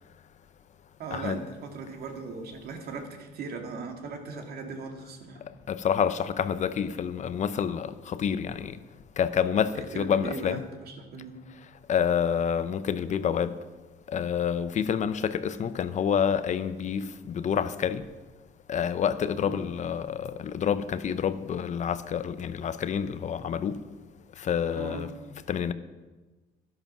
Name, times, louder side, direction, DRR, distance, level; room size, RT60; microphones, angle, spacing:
voice 1, 1.0-5.4 9.7-11.4 19.4-19.6 24.7-25.1, right 4 dB, 65° right, 2.2 m, -38 dB
voice 2, 5.5-8.8 9.2-10.6 11.9-13.6 14.1-18.1 18.7-23.8 24.4-25.1 25.5-25.7, left 8 dB, 45° left, 0.7 m, -28 dB
12.0 x 11.0 x 6.1 m
cardioid pair, 110°, 17 cm